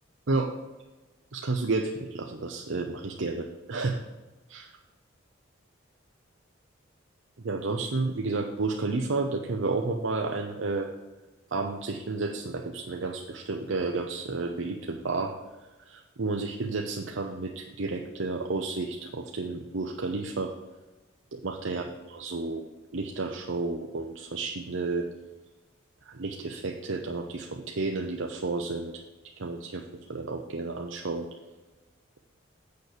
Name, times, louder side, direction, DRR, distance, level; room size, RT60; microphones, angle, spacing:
voice 1, 1.3-4.0 4.5-4.7 7.4-10.9 11.5-15.3 15.8-20.5 21.3-22.6 22.9-25.1 26.0-29.0 29.4-29.8 30.1-31.3, right 3 dB, 70° right, 3 dB, 0.7 m, -31 dB
8.1 x 6.7 x 6.7 m, 1.1 s
head